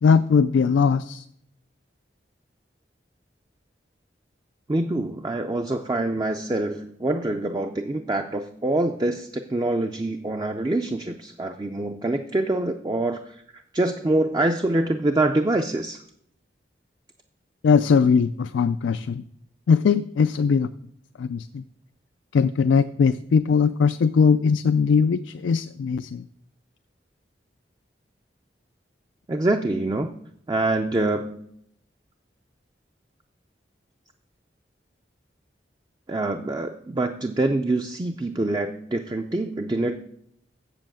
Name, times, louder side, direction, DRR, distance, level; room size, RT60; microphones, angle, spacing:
voice 1, 0.0-1.2 17.6-19.2 19.7-20.7 21.2-21.6 22.3-26.2, left 5 dB, 90° left, 12 dB, 0.3 m, -20 dB
voice 2, 4.7-13.4 13.7-16.0 29.3-30.1 30.5-31.4 36.1-40.0, right 2 dB, 20° right, 6 dB, 0.4 m, -25 dB
7.6 x 7.2 x 7.5 m, 0.73 s
head